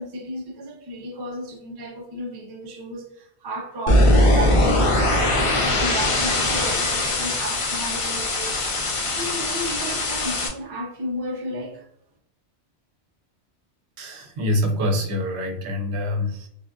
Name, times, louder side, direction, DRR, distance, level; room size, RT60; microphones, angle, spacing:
voice 1, 0.0-8.7 9.1-11.9, equal, 40° right, 0.3 m, -34 dB
sound 1, 3.9-10.5, left 1 dB, 50° left, 0.4 m, -21 dB
voice 2, 14.0-16.5, left 1 dB, 80° right, 0.9 m, -25 dB
3.4 x 2.2 x 2.5 m
omnidirectional pair, 1.1 m